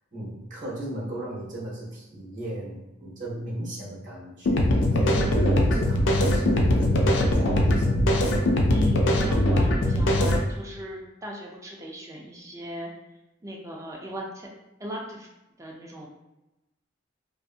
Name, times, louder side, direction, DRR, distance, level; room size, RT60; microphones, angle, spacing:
voice 1, 0.1-8.5, right 1 dB, 45° right, -6 dB, 0.8 m, -35 dB
sound 1, 4.5-10.4, left 1 dB, 65° left, 0.4 m, -21 dB
voice 2, 8.7-12.9 13.4-14.5 14.8-15.3 15.6-16.1, equal, 15° right, -2 dB, 0.4 m, -37 dB
2.6 x 2.5 x 2.4 m, 0.97 s
head